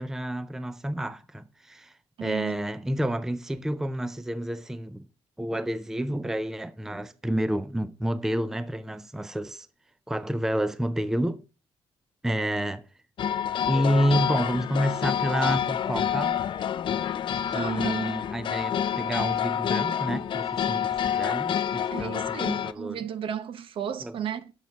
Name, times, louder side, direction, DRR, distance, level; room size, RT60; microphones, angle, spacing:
voice 1, 0.0-1.9 2.2-5.1 5.4-9.7 10.1-11.4 12.2-12.8 13.7-16.4 17.5-23.0 24.0-24.1, equal, 5° right, 0.4 m, -29 dB
voice 2, 2.2-2.6 17.5-18.1 21.9-24.5, right 9 dB, 60° right, 0.8 m, -34 dB
sound 1, 13.2-22.7, left 9 dB, 55° left, 0.5 m, -28 dB
7.3 x 6.7 x 4.5 m
cardioid pair, 115°, 10 cm